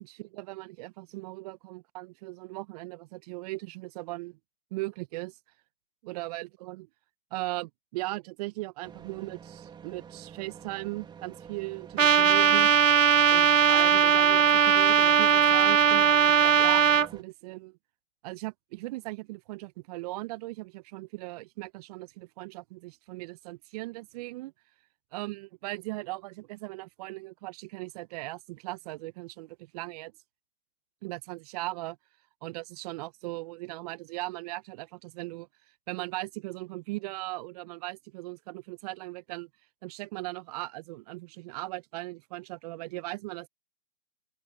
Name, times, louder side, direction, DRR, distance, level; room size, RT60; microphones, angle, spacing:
voice 1, 0.0-4.4 4.7-5.4 6.0-6.9 7.3-12.7 13.3-17.8 18.2-24.5 25.1-30.1 31.0-32.0 32.4-35.5 35.9-39.5 39.8-43.5, right 21 dB, 30° right, 1.4 m, -38 dB
sound 1, 8.8-17.2, right 7 dB, 10° right, 3.3 m, -48 dB
Trumpet, 12.0-17.1, right 7 dB, 85° right, 0.8 m, -20 dB
open air
figure-of-eight pair, 130°, 38 cm